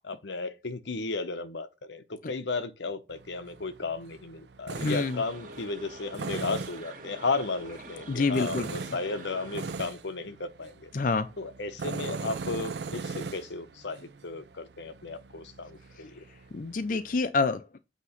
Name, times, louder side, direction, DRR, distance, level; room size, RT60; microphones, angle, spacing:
voice 1, 0.0-10.9 11.4-16.2, left 3 dB, 80° left, 0.9 m, -34 dB
Tools, 3.1-17.2, right 4 dB, 70° right, 0.5 m, -40 dB
sound 1, 4.7-9.8, right 2 dB, 45° right, 1.7 m, -45 dB
voice 2, 4.8-5.2 8.1-8.7 10.9-11.3 16.5-17.8, left 4 dB, 45° left, 0.5 m, -27 dB
8.2 x 3.0 x 5.7 m
head